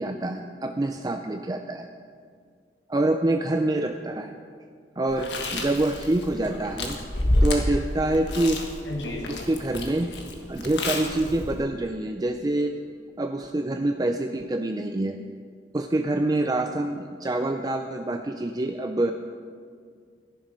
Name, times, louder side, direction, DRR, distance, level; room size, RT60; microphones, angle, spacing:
voice 1, 0.0-1.9 2.9-4.4 5.0-7.0 7.4-8.6 9.3-10.1 10.5-12.8 13.2-15.2 15.7-19.1, right 2 dB, 20° right, 5 dB, 0.4 m, -26 dB
Chewing mastication, 5.1-11.6, left 1 dB, 75° left, 1.6 m, -29 dB
14.5 x 11.0 x 5.2 m, 2.1 s
head